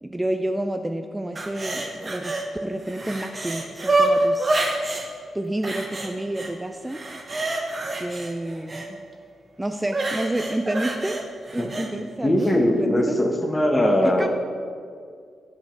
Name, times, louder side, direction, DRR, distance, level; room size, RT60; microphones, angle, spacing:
voice 1, 0.0-2.4 2.6-4.6 5.3-7.0 8.0-8.9 9.6-11.2 11.5-12.5 12.8-13.2 14.0-14.3, right 1 dB, 10° right, 6 dB, 0.3 m, -29 dB
sound 1, 1.4-2.5 2.8-5.1 5.6-6.5 6.9-8.9 9.9-11.9 12.4-12.5, right 2 dB, 35° right, 1.0 m, -27 dB
voice 2, 12.2-14.3, left 1 dB, 20° left, 3 dB, 1.0 m, -20 dB
9.3 x 5.3 x 4.5 m, 2.1 s
cardioid pair, 95°, 0 cm